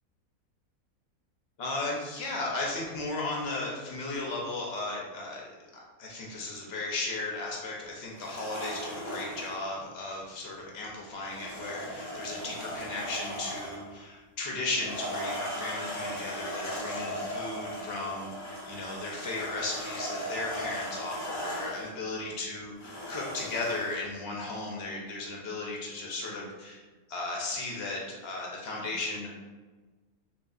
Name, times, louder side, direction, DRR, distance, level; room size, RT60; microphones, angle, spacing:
voice 1, 1.6-26.8 27.1-29.3, left 2 dB, 65° left, -2 dB, 0.6 m, -36 dB
sound 1, 8.1-9.6 11.3-13.9 14.7-21.9 22.8-24.0, equal, 25° left, 0.3 m, -37 dB
2.9 x 2.6 x 2.3 m, 1.3 s
omnidirectional pair, 1.5 m